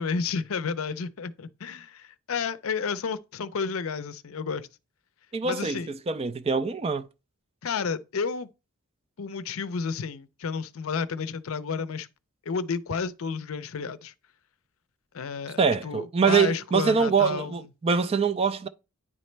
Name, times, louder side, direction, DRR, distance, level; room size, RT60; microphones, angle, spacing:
voice 1, 0.0-4.7 5.4-5.9 7.6-8.5 9.2-12.1 12.5-14.1 15.1-17.7, left 5 dB, 70° left, 0.5 m, -31 dB
voice 2, 5.3-5.8 6.1-7.1 15.6-18.7, right 5 dB, 25° right, 0.3 m, -24 dB
9.8 x 4.1 x 3.2 m
head